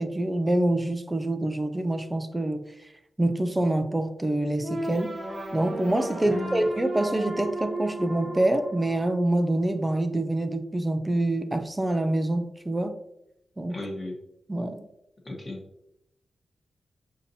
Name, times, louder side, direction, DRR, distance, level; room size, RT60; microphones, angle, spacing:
voice 1, 0.0-2.6 3.2-5.2 5.5-13.0 13.6-13.8 14.5-14.8, right 1 dB, 10° right, 8 dB, 0.4 m, -26 dB
sound 1, 4.6-9.6, right 1 dB, 30° right, 0.8 m, -34 dB
voice 2, 6.2-6.7 13.7-14.2 15.2-15.6, left 2 dB, 30° left, -1 dB, 1.1 m, -35 dB
6.6 x 2.8 x 2.7 m, 0.81 s
wide cardioid pair, 135°, 0 cm